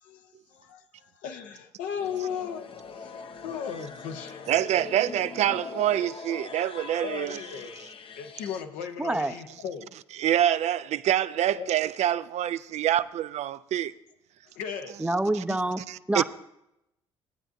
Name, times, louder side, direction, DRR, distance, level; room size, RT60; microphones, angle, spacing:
voice 1, 0.0-2.7 2.9-4.5 7.0-7.7 8.2-9.9 11.5-11.7 14.5-15.0, left 7 dB, 75° left, 0.9 m, -36 dB
sound 1, 2.0-8.6, left 5 dB, 40° left, 0.7 m, -42 dB
voice 2, 4.5-7.4 10.2-13.9 15.3-15.4 15.9-16.2, right 11 dB, 55° right, 0.4 m, -26 dB
voice 3, 9.0-9.3 15.0-15.8 16.1-16.2, right 1 dB, 10° right, 0.6 m, -26 dB
17.0 x 8.8 x 2.6 m
hypercardioid pair, 55°, 14 cm